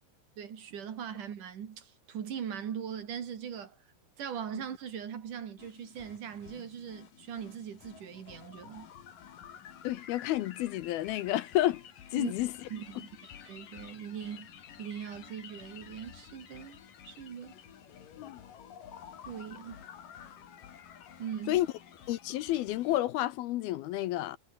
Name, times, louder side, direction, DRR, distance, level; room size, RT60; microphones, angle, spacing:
voice 1, 0.4-3.8 4.2-8.9 12.1-12.3 12.7-14.5 14.8-16.8 17.0-17.5 19.3-19.8 21.2-21.6, right 8 dB, 55° right, 3.4 m, -40 dB
sound 1, 5.6-23.0, left 9 dB, 55° left, 3.8 m, -51 dB
voice 2, 9.8-11.8 12.1-12.5 18.2-18.4 21.5-21.7 22.1-24.4, left 15 dB, 75° left, 2.7 m, -30 dB
omnidirectional pair, 4.7 m